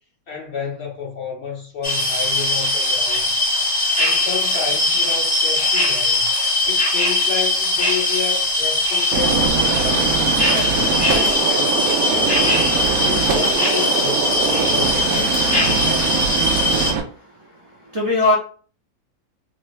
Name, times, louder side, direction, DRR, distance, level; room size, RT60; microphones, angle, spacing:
voice 1, 0.3-3.3 3.9-6.3 6.6-10.2 10.7-12.6 13.0-16.3, left 6 dB, 55° left, 0.9 m, -31 dB
sound 1, 1.8-16.9, left 2 dB, 30° left, 0.5 m, -20 dB
Gunshot gunfire, 9.1-17.0, right 6 dB, 75° right, 1.1 m, -22 dB
voice 2, 16.8-18.4, left 2 dB, 40° right, 0.4 m, -22 dB
2.9 x 2.6 x 3.1 m
omnidirectional pair, 1.6 m